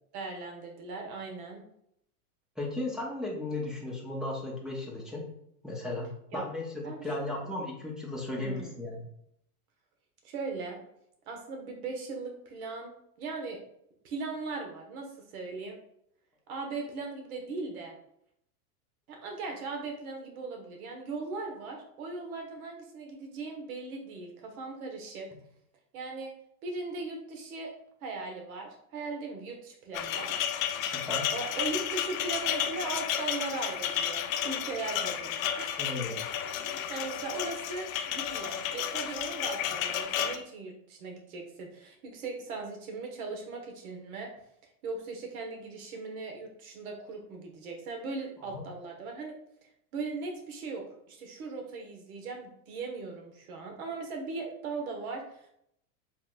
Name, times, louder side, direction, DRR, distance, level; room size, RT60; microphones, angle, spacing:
voice 1, 0.1-1.6 6.3-6.5 6.8-7.4 8.3-8.7 10.2-10.8 11.3-13.6 14.0-15.8 16.5-17.9 19.1-25.3 25.9-26.3 26.6-27.7 28.0-30.4 31.3-35.8 36.5-36.6 36.9-44.3 44.8-49.3 49.9-55.5, right 3 dB, 70° right, 3 dB, 1.4 m, -39 dB
voice 2, 2.6-5.3 5.6-9.0 30.9-31.3 35.8-36.2 48.4-48.6, left 2 dB, ahead, -3 dB, 0.8 m, -35 dB
sound 1, 29.9-40.4, left 9 dB, 65° left, 0.6 m, -32 dB
5.7 x 3.5 x 2.4 m, 0.73 s
supercardioid pair, 135°, 44 cm